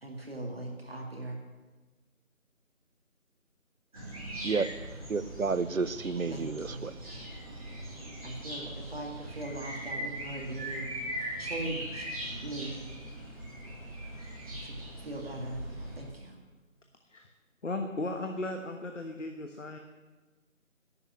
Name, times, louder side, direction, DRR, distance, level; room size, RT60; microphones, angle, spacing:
voice 1, 0.0-1.4 6.3-6.8 8.2-10.8 11.4-12.1 12.4-12.8 14.6-16.3, right 2 dB, 45° right, 1 dB, 2.3 m, -40 dB
sound 1, 3.9-16.1, right 1 dB, 25° right, 3.5 m, -40 dB
voice 2, 5.1-6.9, right 4 dB, 75° right, 15 dB, 0.9 m, -31 dB
voice 3, 17.6-19.8, left 2 dB, 60° left, 4 dB, 1.4 m, -36 dB
11.0 x 8.5 x 9.5 m, 1.2 s
figure-of-eight pair, 170°, 41 cm